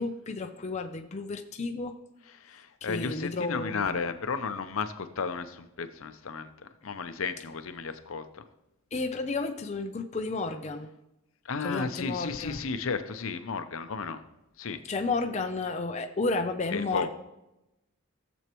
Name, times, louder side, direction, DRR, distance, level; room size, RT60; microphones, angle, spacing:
voice 1, 0.0-2.0 2.8-4.0 8.9-10.9 11.6-12.6 14.9-17.1, left 3 dB, 30° left, 5 dB, 0.5 m, -32 dB
voice 2, 2.4-6.5 6.8-8.4 11.4-14.2 14.6-14.8 16.7-17.1, left 5 dB, 75° left, 10 dB, 0.6 m, -33 dB
15.5 x 7.2 x 3.0 m, 0.93 s
head